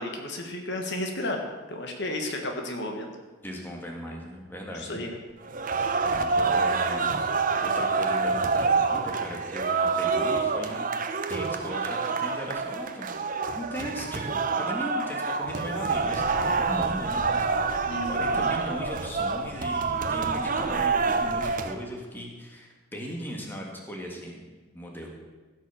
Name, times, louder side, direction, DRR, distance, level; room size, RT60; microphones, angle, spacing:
voice 1, 0.0-3.1 4.8-5.2 17.9-18.6, left 1 dB, 55° left, 3 dB, 1.4 m, -33 dB
voice 2, 3.4-5.0 5.6-7.1 7.6-13.2 13.5-25.2, equal, 10° left, 0 dB, 1.7 m, -38 dB
sound 1, 5.4-21.7, right 4 dB, 40° right, 0.7 m, -27 dB
Thunder, 15.8-21.5, equal, 25° right, 4.4 m, -44 dB
16.0 x 6.2 x 7.1 m, 1.3 s
head